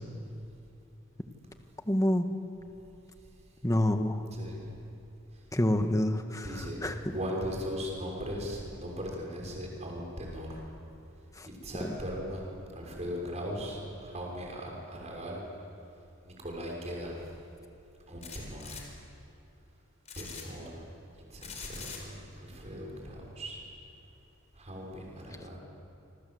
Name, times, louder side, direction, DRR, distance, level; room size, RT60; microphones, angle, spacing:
voice 1, 1.9-2.2 3.6-4.2 5.5-6.5 6.8-6.9 11.4-11.5, left 1 dB, 15° left, 6 dB, 1.6 m, -27 dB
voice 2, 4.3-4.8 5.3-5.4 6.4-10.7 11.4-15.5 16.2-17.2 18.1-18.9 20.2-20.8 21.3-23.6 24.5-25.6, equal, 35° right, -1 dB, 6.4 m, -39 dB
sound 1, 18.2-18.8 20.1-20.4 21.4-22.0, left 6 dB, 35° left, 4.6 m, -43 dB
27.0 x 26.5 x 8.0 m, 2.8 s
head